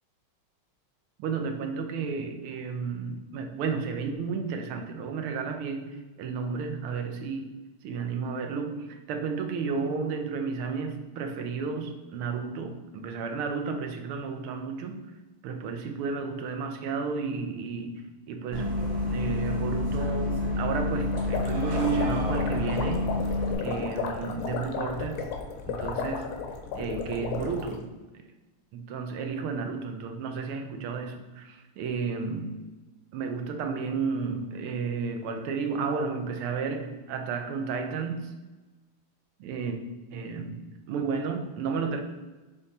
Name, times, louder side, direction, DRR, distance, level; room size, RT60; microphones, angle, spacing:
voice 1, 1.2-7.5 7.8-15.0 15.4-23.1 23.6-25.3 25.7-26.4 26.7-27.9 28.7-32.5 33.1-38.3 39.4-39.8 40.1-40.6 40.9-42.0, right 5 dB, 90° right, 5 dB, 1.7 m, -32 dB
Bus, 18.5-23.5, left 2 dB, 65° right, 2.1 m, -28 dB
sound 1, 20.9-27.8, left 6 dB, 85° left, 1.7 m, -34 dB
6.7 x 3.7 x 4.1 m, 1.2 s
omnidirectional pair, 2.3 m